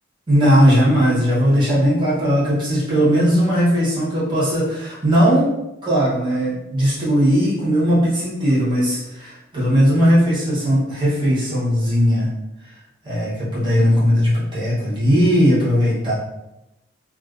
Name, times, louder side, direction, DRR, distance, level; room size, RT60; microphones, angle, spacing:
voice 1, 0.3-5.5 5.8-12.3 13.0-16.1, equal, 25° right, -9 dB, 0.8 m, -18 dB
2.3 x 2.3 x 2.4 m, 0.92 s
head